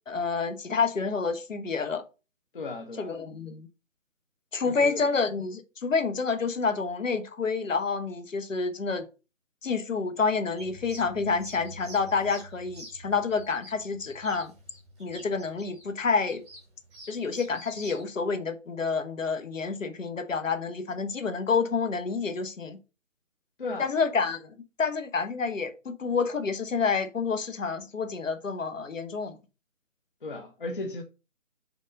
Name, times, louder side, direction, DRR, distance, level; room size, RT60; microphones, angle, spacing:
voice 1, 0.1-2.0 3.0-3.7 4.5-9.1 9.6-14.5 15.0-16.4 17.1-22.8 23.8-24.5 24.8-29.4, left 5 dB, 70° left, 1.1 m, -28 dB
voice 2, 2.5-3.1 4.7-5.1 23.6-23.9 30.2-31.0, left 2 dB, 40° left, 0.7 m, -35 dB
sound 1, 10.6-18.0, right 1 dB, ahead, 0.9 m, -47 dB
5.1 x 3.9 x 5.1 m
figure-of-eight pair, 160°, 40 cm